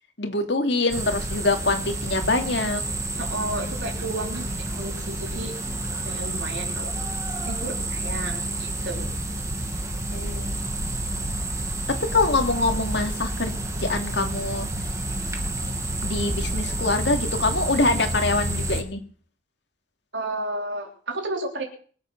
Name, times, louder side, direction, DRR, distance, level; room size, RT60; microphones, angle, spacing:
voice 1, 0.2-2.8 10.1-10.6 12.1-14.7 16.0-19.0, left 3 dB, 60° left, 4 dB, 2.7 m, -24 dB
sound 1, 0.9-18.8, right 1 dB, 15° right, 1.9 m, -29 dB
voice 2, 3.1-4.4 4.8-5.5 6.0-6.9 7.4-9.1 20.1-21.6, right 2 dB, 65° right, 2 dB, 3.6 m, -32 dB
23.5 x 8.3 x 6.1 m, 0.43 s
head